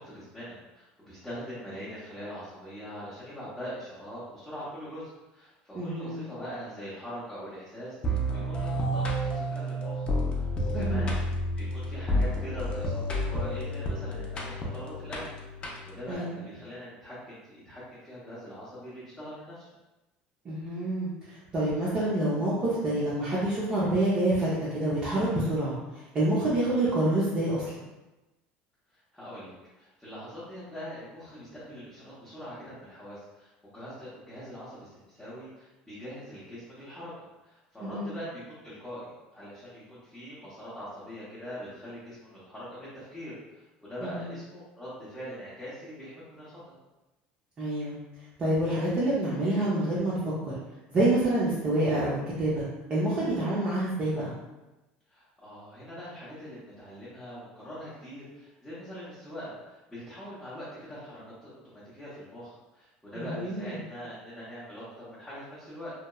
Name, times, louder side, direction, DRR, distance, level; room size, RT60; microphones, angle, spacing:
voice 1, 0.0-10.1 10.3-15.3 15.8-19.7 28.9-37.1 37.4-46.7 55.1-65.9, equal, ahead, -14 dB, 0.8 m, -42 dB
voice 2, 5.7-6.2 10.7-11.1 16.1-16.4 20.4-27.8 37.8-38.1 44.0-44.3 47.6-48.0 48.4-50.5 50.9-54.3 63.2-63.7, right 1 dB, 30° right, -8 dB, 0.5 m, -27 dB
sound 1, 8.0-16.1, equal, 25° left, 0.4 m, -30 dB
2.8 x 2.1 x 2.2 m, 1.0 s
cardioid pair, 145°, 4 cm